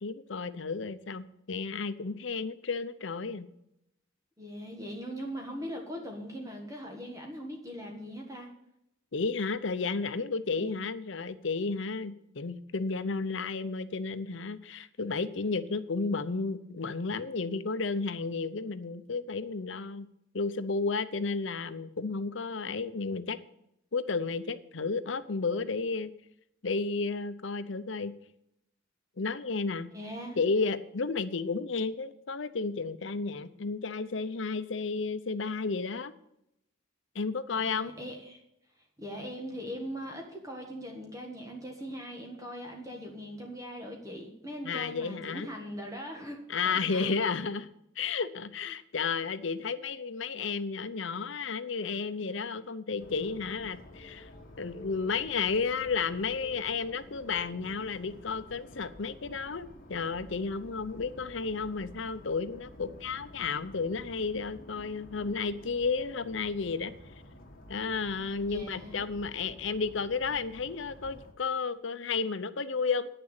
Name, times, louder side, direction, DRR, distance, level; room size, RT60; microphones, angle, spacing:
voice 1, 0.0-3.5 9.1-20.1 20.3-23.4 23.9-26.1 26.6-28.1 29.2-29.9 30.4-36.1 37.1-37.9 44.6-45.5 46.5-47.7 48.0-54.3 54.6-66.9 67.7-73.1, left 4 dB, 70° left, 13 dB, 0.7 m, -32 dB
voice 2, 4.4-8.5 10.6-10.8 29.9-30.4 37.7-38.4 39.0-46.4 46.9-47.1 68.5-69.0, equal, 15° right, 1 dB, 1.5 m, -40 dB
sound 1, 53.0-71.3, left 1 dB, 45° left, 1.9 m, -51 dB
sound 2, 53.5-57.9, left 2 dB, 30° left, 1.8 m, -52 dB
9.8 x 6.8 x 8.8 m, 0.79 s
head